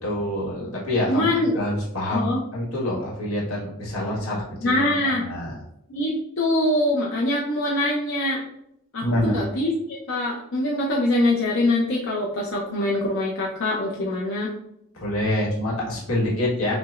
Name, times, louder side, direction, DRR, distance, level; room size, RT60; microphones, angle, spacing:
voice 1, 0.0-5.6 9.0-9.4 14.9-16.7, left 1 dB, 80° left, -4 dB, 1.5 m, -26 dB
voice 2, 1.1-1.5 2.1-2.4 4.6-5.3 5.9-8.4 8.9-14.5, left 1 dB, 60° left, -4 dB, 0.5 m, -23 dB
5.8 x 2.0 x 2.4 m, 0.77 s
head